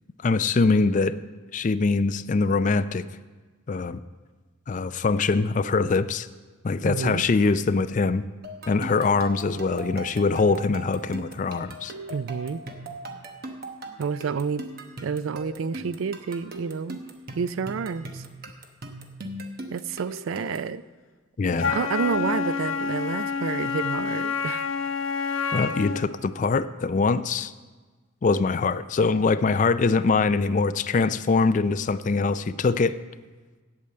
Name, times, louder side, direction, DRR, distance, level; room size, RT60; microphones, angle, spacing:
voice 1, 0.2-1.2 1.5-3.0 3.7-4.0 4.7-6.3 6.6-8.2 8.7-11.9 21.4-21.8 25.5-27.5 28.2-33.0, left 4 dB, 40° left, 13 dB, 0.4 m, -23 dB
voice 2, 6.8-7.2 12.1-12.6 14.0-14.7 15.0-17.0 17.3-18.2 19.7-20.8 21.7-24.6, right 6 dB, 80° right, 16 dB, 0.4 m, -29 dB
sound 1, 8.4-20.7, right 1 dB, 50° right, 1.0 m, -39 dB
Wind instrument woodwind instrument, 21.6-26.1, left 5 dB, 80° left, 0.6 m, -28 dB
8.6 x 8.3 x 7.7 m, 1.4 s
head